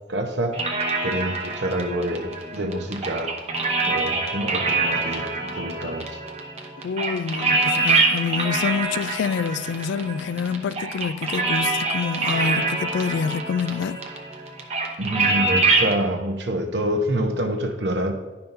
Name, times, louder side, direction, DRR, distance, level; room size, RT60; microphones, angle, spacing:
voice 1, 0.1-0.6 1.0-3.4 3.9-6.2 15.0-18.1, right 1 dB, 70° right, 1.0 m, -27 dB
sound 1, 0.5-15.9, right 3 dB, 35° right, 0.8 m, -25 dB
voice 2, 6.8-14.0, left 6 dB, 90° left, 0.3 m, -27 dB
10.5 x 5.6 x 2.7 m
head